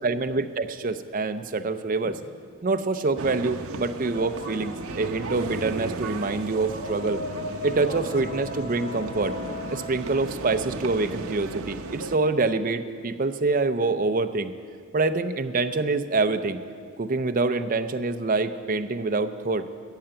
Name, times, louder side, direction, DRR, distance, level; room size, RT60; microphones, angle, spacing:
voice 1, 0.0-2.2 2.6-7.2 7.6-9.4 9.7-14.5 14.9-16.6 17.0-19.7, right 3 dB, 40° right, 9 dB, 0.5 m, -26 dB
sound 1, 1.9-3.2 3.5-11.3, left 2 dB, 30° left, 0.9 m, -39 dB
sound 2, 3.2-12.2, right 3 dB, 75° right, 0.7 m, -35 dB
14.5 x 6.7 x 8.8 m, 2.1 s
head